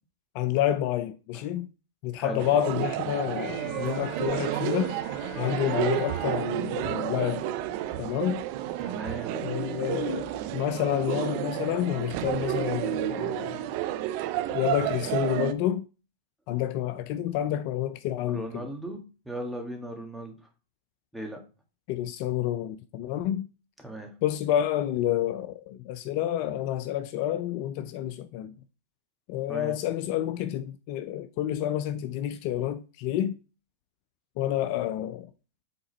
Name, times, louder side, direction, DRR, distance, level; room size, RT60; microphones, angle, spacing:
voice 1, 0.3-1.7 2.0-4.9 5.4-7.5 8.0-8.4 9.3-13.6 14.5-15.8 16.5-18.7 21.9-23.5 24.2-28.5 29.3-33.4 34.4-35.3, left 12 dB, 50° left, 0.5 m, -29 dB
sound 1, 2.4-15.5, right 12 dB, 50° right, 0.6 m, -31 dB
Bowed string instrument, 3.4-8.2, right 1 dB, 20° left, 2.5 m, -43 dB
voice 2, 8.8-9.4 18.3-20.5 21.1-21.4 23.8-24.1 29.5-29.8, right 1 dB, ahead, 1.8 m, -37 dB
7.9 x 3.7 x 4.2 m
hypercardioid pair, 110°, 0 cm